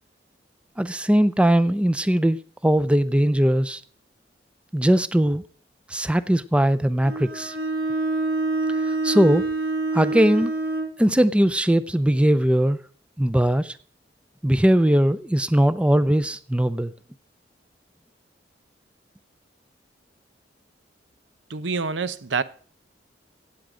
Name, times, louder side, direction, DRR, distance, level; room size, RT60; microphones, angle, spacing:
voice 1, 0.8-2.4 2.6-3.8 4.7-5.4 5.9-7.5 8.9-9.5 9.9-10.5 11.0-12.8 13.2-13.7 14.4-16.9, equal, 5° right, 0.5 m, -20 dB
Bowed string instrument, 7.0-11.0, right 2 dB, 55° right, 2.2 m, -26 dB
voice 2, 21.5-22.4, right 4 dB, 85° right, 0.8 m, -26 dB
16.0 x 8.6 x 5.0 m
head